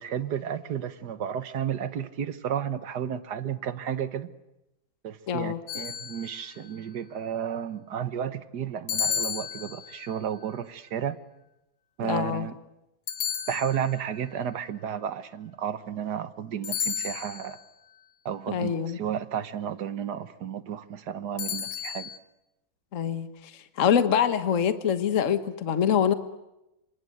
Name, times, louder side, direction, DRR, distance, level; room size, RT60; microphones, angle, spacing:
voice 1, 0.0-4.3 5.0-11.2 12.0-12.6 13.5-17.6 18.3-22.1, right 8 dB, 60° right, 13 dB, 1.7 m, -32 dB
voice 2, 5.3-5.6 12.0-12.5 18.5-19.0 22.9-23.5 23.8-26.1, left 8 dB, 45° left, 10 dB, 1.6 m, -25 dB
sound 1, 5.7-6.6 8.9-10.1 13.1-14.1 16.6-17.6 21.4-22.2, left 8 dB, 85° left, 2.3 m, -32 dB
27.5 x 26.0 x 7.8 m, 0.91 s
omnidirectional pair, 2.2 m